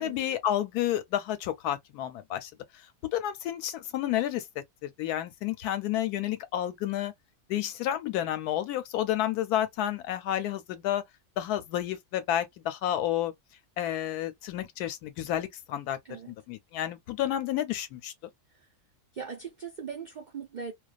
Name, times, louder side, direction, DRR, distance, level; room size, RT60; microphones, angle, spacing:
voice 1, 0.0-2.5 3.1-4.4 4.8-7.1 7.5-11.0 11.4-13.3 13.8-16.0 16.5-18.1, left 12 dB, 90° left, 1.1 m, -30 dB
voice 2, 19.1-20.7, right 6 dB, 85° right, 0.4 m, -40 dB
2.3 x 2.3 x 2.4 m
omnidirectional pair, 1.6 m